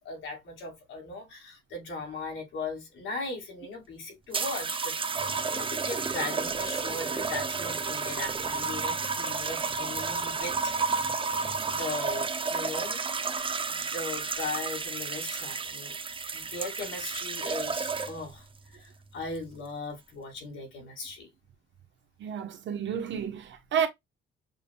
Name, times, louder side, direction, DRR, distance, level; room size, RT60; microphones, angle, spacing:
voice 1, 0.0-10.7 11.7-13.0 13.7-15.9 16.3-18.5 18.7-21.3, left 3 dB, 75° left, 2.6 m, -38 dB
sound 1, 4.3-18.3 19.2-19.5, right 4 dB, 25° right, 0.6 m, -31 dB
voice 2, 22.2-23.9, right 7 dB, 70° right, 1.1 m, -30 dB
7.0 x 2.6 x 2.3 m
cardioid pair, 90°, 20 cm